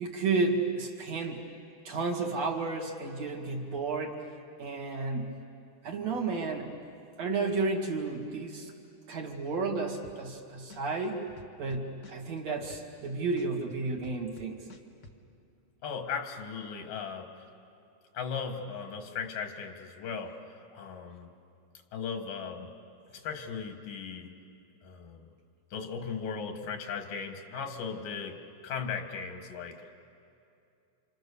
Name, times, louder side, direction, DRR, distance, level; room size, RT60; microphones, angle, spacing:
voice 1, 0.0-1.4 1.8-4.2 4.6-5.4 5.8-6.7 7.2-8.7 9.1-11.2 11.6-14.6, right 3 dB, 55° right, -1 dB, 3.0 m, -32 dB
sound 1, 10.0-10.4 10.7-13.1 13.4-15.2, left 3 dB, 50° left, 1.3 m, -51 dB
voice 2, 15.8-17.4 18.1-20.4 20.7-21.3 21.9-22.7 23.1-24.3 24.8-25.3 25.7-30.0, left 6 dB, 90° left, 5 dB, 3.4 m, -37 dB
29.5 x 26.5 x 6.9 m, 2.6 s
omnidirectional pair, 3.8 m